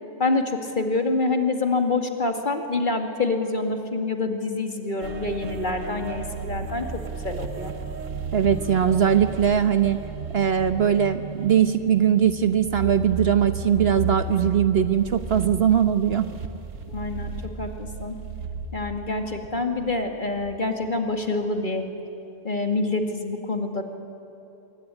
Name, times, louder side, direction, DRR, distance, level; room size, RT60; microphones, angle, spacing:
voice 1, 0.2-7.7 16.9-17.3 17.6-18.1 18.7-21.9 22.4-23.8, left 3 dB, 40° left, 4 dB, 2.3 m, -26 dB
sound 1, 5.0-20.5 20.9-21.2, right 5 dB, 90° right, 1.8 m, -34 dB
voice 2, 8.3-10.0 10.3-16.3, right 8 dB, 55° right, 10 dB, 1.1 m, -20 dB
26.0 x 23.0 x 9.8 m, 2.9 s
omnidirectional pair, 1.3 m